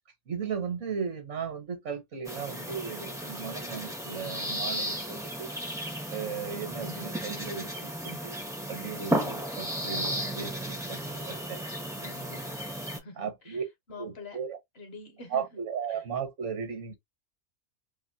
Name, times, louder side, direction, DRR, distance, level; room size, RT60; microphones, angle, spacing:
voice 1, 0.3-5.5 6.1-8.3 8.7-11.0 11.3-11.6 13.2-13.6 14.0-14.5 15.3-17.0, right 6 dB, 65° right, 1.2 m, -36 dB
sound 1, 2.2-13.0, equal, 5° right, 0.4 m, -34 dB
voice 2, 12.0-12.5 12.9-13.6 13.9-14.4 14.7-16.1, left 3 dB, 60° left, 0.9 m, -47 dB
2.7 x 2.5 x 2.6 m
omnidirectional pair, 1.3 m